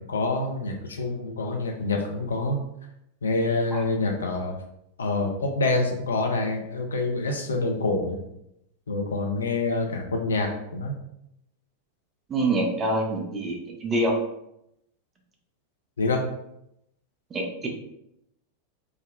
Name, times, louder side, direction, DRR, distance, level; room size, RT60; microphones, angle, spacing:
voice 1, 0.1-2.6 3.2-4.6 5.0-8.2 8.9-10.9 16.0-16.2, left 2 dB, 70° left, 2 dB, 0.4 m, -26 dB
voice 2, 12.3-14.1 17.3-17.7, right 1 dB, 20° right, 1 dB, 0.6 m, -26 dB
3.5 x 2.0 x 2.3 m, 0.80 s
figure-of-eight pair, 90°, 0 cm